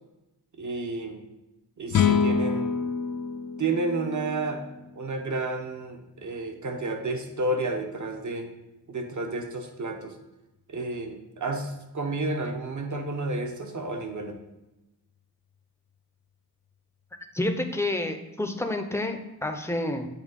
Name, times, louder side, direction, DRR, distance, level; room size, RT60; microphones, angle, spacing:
voice 1, 0.6-1.2 1.8-2.7 3.6-4.7 4.9-8.5 8.9-10.1 10.7-14.4, right 2 dB, 50° right, 4 dB, 1.0 m, -31 dB
sound 1, 1.9-5.2, left 6 dB, 55° left, 0.5 m, -27 dB
voice 2, 17.3-20.1, left 1 dB, 5° left, 5 dB, 0.6 m, -29 dB
8.4 x 3.4 x 5.2 m, 0.99 s
wide cardioid pair, 125°, 38 cm